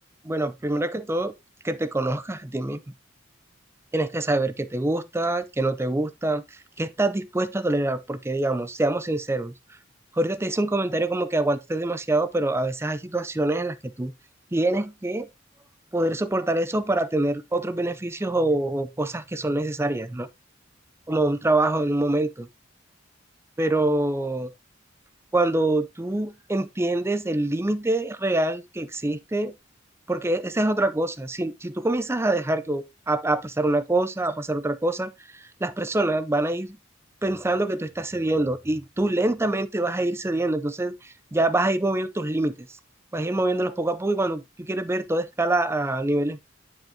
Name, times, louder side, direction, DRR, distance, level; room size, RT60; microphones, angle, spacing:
voice 1, 0.2-1.3 1.6-2.8 3.9-6.4 6.8-9.5 10.1-14.1 14.5-15.3 15.9-20.3 21.1-22.5 23.6-24.5 25.3-29.5 30.1-36.8 37.2-42.7 43.1-46.4, right 2 dB, 15° right, 0.5 m, -25 dB
9.4 x 5.3 x 2.7 m
head